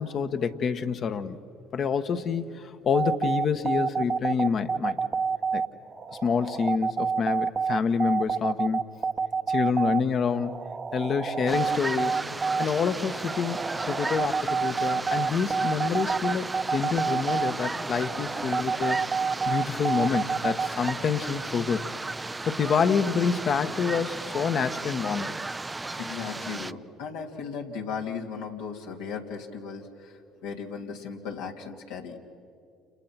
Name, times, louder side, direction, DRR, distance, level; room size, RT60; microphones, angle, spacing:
voice 1, 0.0-1.4 1.7-5.0 5.5-5.6 6.2-8.8 9.5-10.6 10.9-12.2 12.6-21.8 22.4-25.3, left 6 dB, 50° left, 9 dB, 1.4 m, -27 dB
sound 1, 2.9-20.9, right 5 dB, 35° right, 1.0 m, -28 dB
sound 2, 11.5-26.7, right 2 dB, 20° right, 0.5 m, -35 dB
voice 2, 25.9-30.1 30.4-32.2, left 6 dB, 80° left, 1 dB, 2.7 m, -36 dB
30.0 x 30.0 x 6.0 m, 2.5 s
hypercardioid pair, 65°, 0 cm